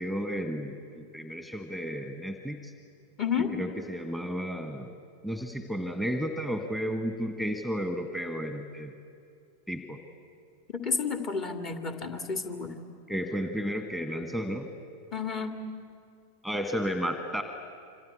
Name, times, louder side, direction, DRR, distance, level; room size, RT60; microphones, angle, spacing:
voice 1, 0.0-2.7 3.6-4.9 5.2-8.9 9.7-10.0 13.1-14.7 16.4-17.4, equal, 5° left, 7 dB, 1.7 m, -33 dB
voice 2, 3.2-3.5 10.7-12.8 15.1-15.5, left 5 dB, 30° left, 6 dB, 2.4 m, -31 dB
27.0 x 26.0 x 8.5 m, 2.3 s
figure-of-eight pair, 90°, 0 cm